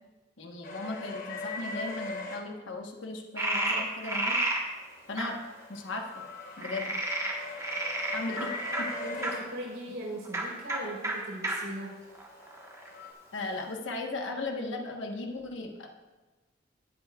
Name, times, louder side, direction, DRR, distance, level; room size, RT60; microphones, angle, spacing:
voice 1, 0.4-4.4 5.1-5.4 5.7-6.2 6.6-7.0 8.1-8.9 13.3-15.9, left 2 dB, 75° left, 2 dB, 1.2 m, -37 dB
sound 1, 0.6-2.4 4.8-9.4 11.8-13.1, left 3 dB, 45° left, 1.1 m, -40 dB
Frog, 3.4-4.6 5.2-5.3 6.6-9.3 10.2-10.4 10.7-10.8 11.0-11.1 11.4-11.5 12.1-12.9, right 2 dB, 15° right, 1.3 m, -31 dB
voice 2, 8.9-12.0, right 1 dB, 75° right, -2 dB, 3.7 m, -39 dB
18.5 x 8.1 x 2.4 m, 1.2 s
head